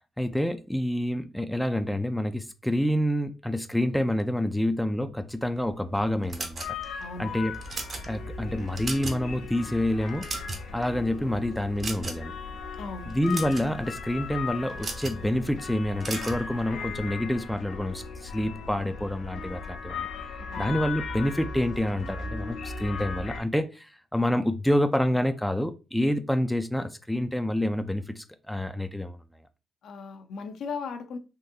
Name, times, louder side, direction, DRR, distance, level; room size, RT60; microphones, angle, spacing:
voice 1, 0.2-6.6 7.2-7.5 8.1-10.3 10.7-12.3 13.1-20.1 20.6-29.2, left 1 dB, 5° left, 0.3 m, -28 dB
sound 1, 5.6-23.4, left 5 dB, 85° left, 1.0 m, -38 dB
sound 2, 6.3-7.0 7.5-8.1 8.6-9.3 9.6-9.7 10.1-10.8 11.8-12.3 13.1-13.7 14.8-15.2 16.0-16.4, right 2 dB, 45° right, 0.8 m, -35 dB
voice 2, 7.0-7.4 12.8-13.1 20.5-20.8 29.8-31.2, left 5 dB, 70° left, 0.5 m, -37 dB
3.7 x 2.6 x 2.6 m
cardioid pair, 90°, 0 cm